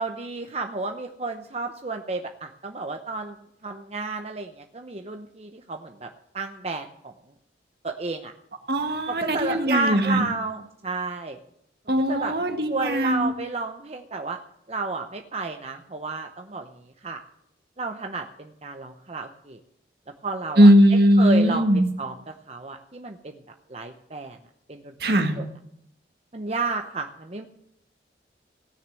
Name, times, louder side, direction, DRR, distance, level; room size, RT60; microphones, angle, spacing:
voice 1, 0.0-3.4 3.6-7.1 7.8-8.3 9.1-11.4 12.1-12.3 12.7-14.4 14.7-16.7 17.0-17.2 17.8-19.6 20.2-20.7 21.2-23.4 23.7-24.4 24.7-25.5 26.3-27.4, right 3 dB, 35° right, 5 dB, 0.8 m, -32 dB
voice 2, 8.7-10.3 11.9-13.3 20.6-21.9 25.0-25.4, equal, 60° right, 6 dB, 1.8 m, -19 dB
17.0 x 6.6 x 8.9 m, 0.76 s
head